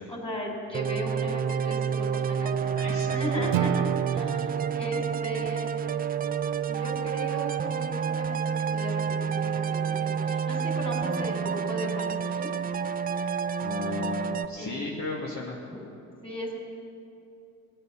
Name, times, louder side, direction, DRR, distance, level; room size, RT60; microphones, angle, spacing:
voice 1, 0.1-5.7 6.7-12.5 14.6-14.8 16.2-16.5, equal, 15° left, 0 dB, 4.2 m, -36 dB
sound 1, 0.7-14.5, right 7 dB, 20° right, 0.5 m, -29 dB
voice 2, 2.7-3.6 13.6-15.6, left 4 dB, 40° left, -3 dB, 1.9 m, -35 dB
Acoustic guitar / Strum, 3.5-6.7, right 10 dB, 75° right, 0.7 m, -33 dB
17.5 x 9.4 x 6.0 m, 2.7 s
hypercardioid pair, 70°, 41 cm